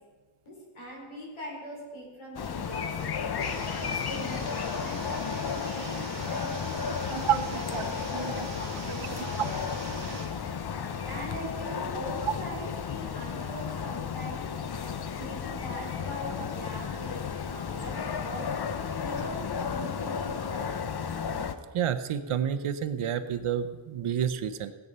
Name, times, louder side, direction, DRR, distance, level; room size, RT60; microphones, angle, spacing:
voice 1, 0.5-10.0 11.0-14.5 15.1-20.7, left 1 dB, 75° left, -4 dB, 5.3 m, -41 dB
sound 1, 2.4-21.6, left 6 dB, 50° left, 0.8 m, -33 dB
sound 2, 3.4-10.3, right 3 dB, 30° right, 2.5 m, -42 dB
sound 3, 5.4-12.8, right 2 dB, 5° right, 2.0 m, -54 dB
voice 2, 7.1-7.8 8.1-8.5 12.2-12.3 21.7-24.7, right 9 dB, 80° right, 10 dB, 0.9 m, -29 dB
17.0 x 8.2 x 5.5 m, 1.4 s
wide cardioid pair, 115°, 49 cm